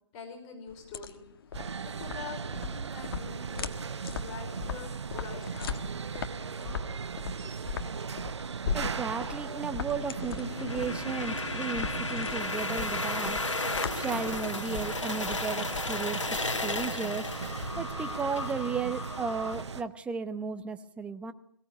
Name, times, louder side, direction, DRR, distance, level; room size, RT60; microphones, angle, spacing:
voice 1, 0.1-1.2 1.8-3.8 4.2-5.8, left 5 dB, 25° left, 2 dB, 5.3 m, -44 dB
sound 1, 0.7-18.1, left 7 dB, 50° left, 1.6 m, -40 dB
sound 2, 1.5-19.8, right 6 dB, 65° right, 1.1 m, -38 dB
voice 2, 8.7-13.4 13.9-16.2 16.6-17.3 17.8-21.3, right 5 dB, 5° right, 9 dB, 0.9 m, -34 dB
sound 3, 9.9-19.6, left 3 dB, 80° left, 1.8 m, -35 dB
23.0 x 17.0 x 9.4 m, 0.69 s
figure-of-eight pair, 135°, 15 cm